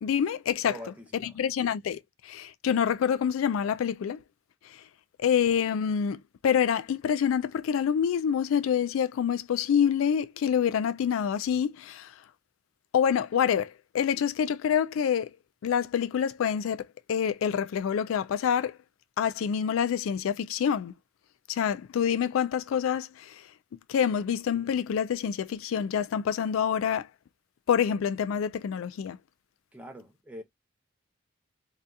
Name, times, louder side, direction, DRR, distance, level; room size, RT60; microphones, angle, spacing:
voice 1, 0.0-0.7 1.2-4.2 5.2-12.1 12.9-15.3 15.6-18.8 19.2-20.9 21.5-23.4 23.9-27.1 27.7-29.2, left 8 dB, 90° left, 0.3 m, -27 dB
voice 2, 0.7-1.4 29.7-30.4, equal, 5° right, 0.6 m, -44 dB
2.7 x 2.3 x 3.4 m
head